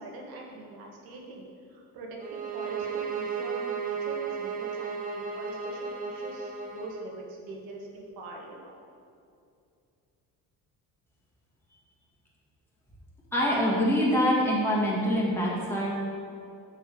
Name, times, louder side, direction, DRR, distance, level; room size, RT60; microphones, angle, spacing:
voice 1, 0.0-8.7, right 2 dB, 85° right, -1 dB, 1.7 m, -43 dB
sound 1, 2.2-7.1, right 6 dB, 25° right, 0.9 m, -34 dB
voice 2, 13.3-15.9, equal, 5° left, -6 dB, 1.9 m, -25 dB
7.1 x 6.3 x 5.3 m, 2.5 s
cardioid pair, 120°, 35 cm